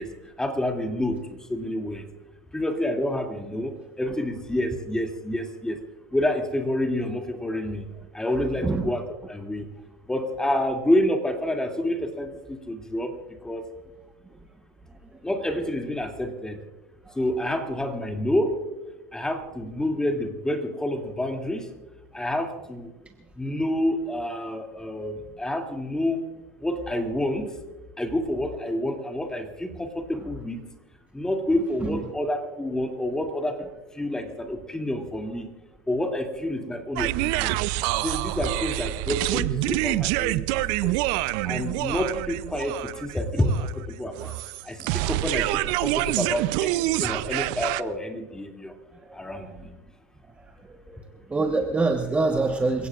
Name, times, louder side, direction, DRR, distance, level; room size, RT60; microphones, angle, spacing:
voice 1, 0.0-2.0 2.5-5.8 6.1-7.9 8.1-9.6 10.1-13.2 13.4-13.7 15.2-16.6 17.1-18.6 19.1-21.7 22.1-22.9 23.4-26.2 26.6-27.5 28.0-30.6 31.1-33.7 33.9-35.5 35.9-37.6 37.9-41.0 41.4-44.4 44.6-48.7 49.1-49.7, left 1 dB, 10° left, 3 dB, 2.7 m, -28 dB
sound 1, 37.0-47.8, right 18 dB, 60° right, 0.6 m, -26 dB
voice 2, 50.4-51.0 51.3-52.9, right 3 dB, 15° right, 4 dB, 1.3 m, -26 dB
29.5 x 17.0 x 2.5 m, 1.1 s
hypercardioid pair, 95°, 8 cm